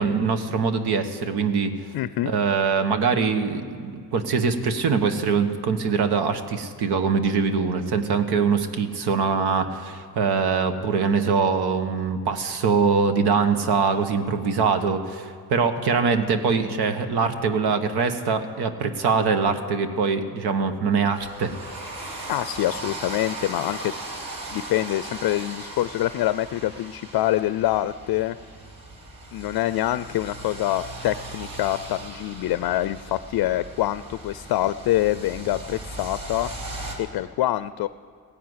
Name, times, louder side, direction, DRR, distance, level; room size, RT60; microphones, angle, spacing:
voice 1, 0.0-1.7 2.2-21.5, right 5 dB, 85° right, 8 dB, 1.3 m, -23 dB
voice 2, 1.9-2.3 22.3-23.9 24.5-28.4 29.3-36.5 37.0-37.9, left 14 dB, 75° left, 14 dB, 0.5 m, -25 dB
sound 1, 21.1-37.0, right 2 dB, 65° right, 3.1 m, -38 dB
17.0 x 10.5 x 8.0 m, 2.3 s
cardioid pair, 115°, 38 cm